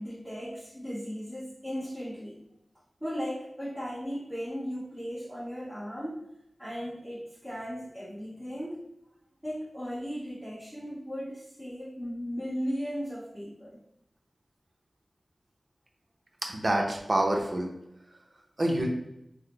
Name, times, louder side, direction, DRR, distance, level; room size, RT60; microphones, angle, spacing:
voice 1, 0.0-2.4 3.0-6.2 6.6-8.8 9.4-13.8, equal, ahead, -13 dB, 1.3 m, -36 dB
voice 2, 16.4-17.7 18.6-18.9, right 1 dB, 45° right, 1 dB, 0.7 m, -27 dB
3.8 x 2.1 x 3.2 m, 0.85 s
wide cardioid pair, 55°, 0 cm